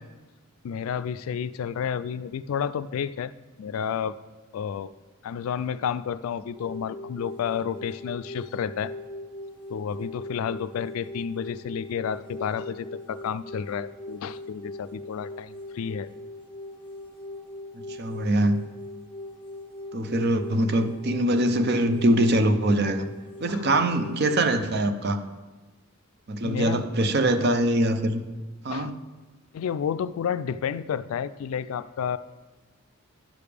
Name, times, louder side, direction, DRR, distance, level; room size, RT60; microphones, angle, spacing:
voice 1, 0.6-3.3 3.6-4.2 4.5-4.9 5.2-8.9 9.7-16.1 23.5-23.9 26.4-26.8 28.7-28.9 29.5-32.2, left 7 dB, 80° left, 14 dB, 0.3 m, -31 dB
sound 1, 6.6-24.6, left 1 dB, 25° left, 1.1 m, -40 dB
voice 2, 17.7-18.6 19.9-23.0 23.4-25.2 26.3-28.2 28.6-29.0, right 1 dB, 50° right, 9 dB, 0.6 m, -23 dB
11.5 x 6.8 x 3.4 m, 1.2 s
head